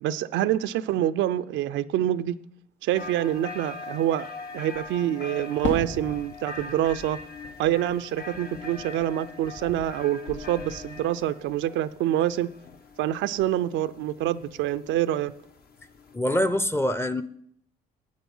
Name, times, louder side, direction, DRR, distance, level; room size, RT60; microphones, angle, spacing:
voice 1, 0.0-2.4 2.8-4.3 4.5-7.2 7.6-12.5 13.0-15.3, right 12 dB, 80° right, 0.5 m, -26 dB
sound 1, 2.9-16.2, left 4 dB, 50° left, 1.3 m, -42 dB
Fireworks, 5.6-10.0 10.3-11.1, left 3 dB, 75° left, 1.8 m, -38 dB
voice 2, 16.1-17.2, left 1 dB, 10° left, 0.7 m, -24 dB
10.5 x 9.1 x 5.5 m
supercardioid pair, 80°, 19 cm